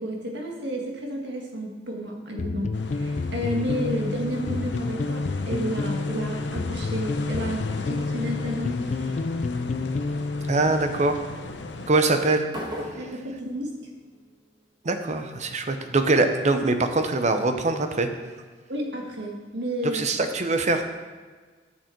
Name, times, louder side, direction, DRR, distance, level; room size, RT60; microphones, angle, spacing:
voice 1, 0.0-9.2 12.9-13.8 18.7-20.0, equal, 70° right, 1 dB, 1.7 m, -31 dB
sound 1, 2.4-10.8, left 3 dB, 40° left, 0.3 m, -29 dB
sound 2, 2.7-11.9, left 2 dB, 85° left, 0.8 m, -37 dB
voice 2, 10.5-11.2 11.9-12.5 14.8-18.1 19.8-20.8, right 2 dB, 40° right, 7 dB, 0.8 m, -23 dB
Resonate crash, 12.5-14.6, equal, 25° right, 1.7 m, -38 dB
10.5 x 7.0 x 4.5 m, 1.4 s
head